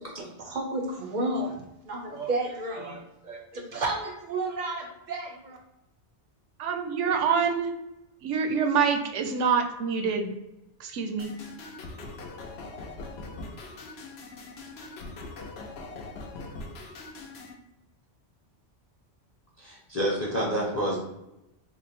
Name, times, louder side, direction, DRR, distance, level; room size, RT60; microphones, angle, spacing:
voice 1, 0.1-5.6, right 2 dB, 50° right, 2 dB, 0.6 m, -32 dB
voice 2, 6.6-7.7 8.2-10.3 10.8-11.3, right 6 dB, 85° right, 4 dB, 0.9 m, -26 dB
Video Game Slap, 11.2-17.6, left 3 dB, 65° left, 0.8 m, -41 dB
voice 3, 19.6-21.0, equal, 15° left, -4 dB, 0.7 m, -29 dB
3.8 x 2.1 x 4.1 m, 0.90 s
omnidirectional pair, 1.2 m